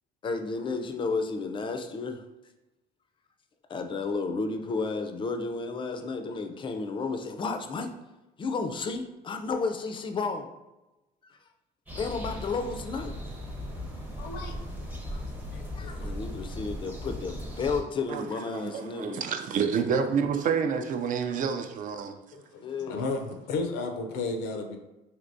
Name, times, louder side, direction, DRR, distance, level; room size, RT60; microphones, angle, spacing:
voice 1, 0.2-2.2 3.7-7.9 8.4-10.5 11.9-13.1 15.7-19.2 22.6-23.1, left 4 dB, 30° left, 6 dB, 0.4 m, -32 dB
sound 1, 11.9-17.8, left 1 dB, 10° right, 0.6 m, -37 dB
voice 2, 14.2-14.6 15.1-15.2 15.5-16.4 22.3-24.8, left 3 dB, 85° left, 5 dB, 0.5 m, -34 dB
voice 3, 18.5-22.2, right 6 dB, 50° right, 7 dB, 0.4 m, -28 dB
3.3 x 2.7 x 2.6 m, 1.0 s
cardioid pair, 110°, 17 cm